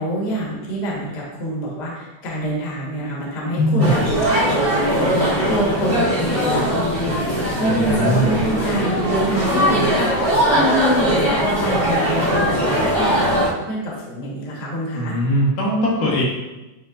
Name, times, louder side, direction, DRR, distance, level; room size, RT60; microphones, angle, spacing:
voice 1, 0.0-15.1, equal, 40° left, -5 dB, 1.8 m, -25 dB
voice 2, 3.6-4.0 7.7-8.4 14.9-16.2, equal, 75° left, -5 dB, 2.9 m, -20 dB
sound 1, 3.8-13.5, equal, 45° right, 0.7 m, -20 dB
10.5 x 3.7 x 2.6 m, 1.1 s
omnidirectional pair, 3.7 m